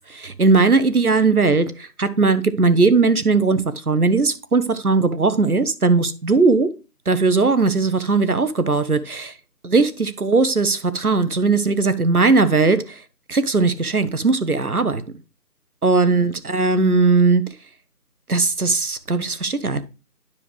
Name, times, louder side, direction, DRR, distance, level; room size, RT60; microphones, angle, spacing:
voice 1, 0.1-6.7 7.1-9.3 9.6-13.0 13.3-15.0 15.8-17.4 18.3-19.8, right 3 dB, 65° right, 1.0 m, -18 dB
9.9 x 6.7 x 3.1 m
figure-of-eight pair, 180°, 47 cm